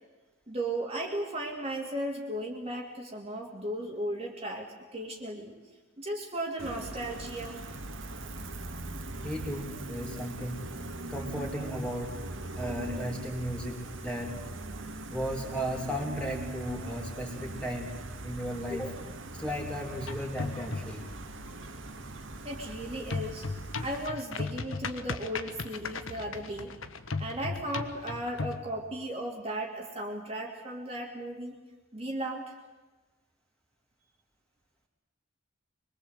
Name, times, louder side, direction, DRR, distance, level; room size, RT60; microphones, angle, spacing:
voice 1, 0.5-5.5 6.0-7.6 22.4-23.5 23.8-26.7 27.2-31.6 31.9-32.5, right 1 dB, 30° right, 0 dB, 2.8 m, -36 dB
Gull seagull, 6.6-24.1, right 2 dB, 65° right, 2.2 m, -41 dB
voice 2, 9.2-10.7 11.1-12.3 12.5-14.5 15.1-17.9 18.2-19.0 19.3-21.1, equal, 5° left, 0 dB, 3.6 m, -35 dB
sound 1, 20.0-21.1 23.1-28.7, left 3 dB, 70° left, 1.5 m, -36 dB
24.5 x 22.5 x 8.2 m, 1.2 s
head